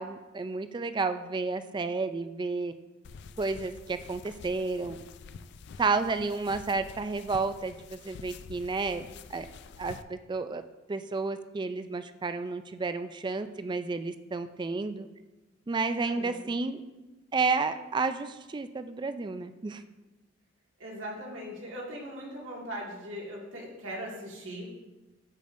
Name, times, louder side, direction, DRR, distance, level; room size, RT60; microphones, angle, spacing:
voice 1, 0.0-2.7 3.4-5.0 5.8-9.5 9.8-10.6 10.9-15.1 15.7-16.8 17.3-19.8, right 4 dB, 25° right, 10 dB, 0.4 m, -31 dB
sound 1, 3.0-10.0, left 5 dB, 60° left, 0.3 m, -48 dB
voice 2, 16.0-16.5 20.8-24.7, equal, 80° right, -3 dB, 2.0 m, -40 dB
13.5 x 5.2 x 2.6 m, 1.1 s
head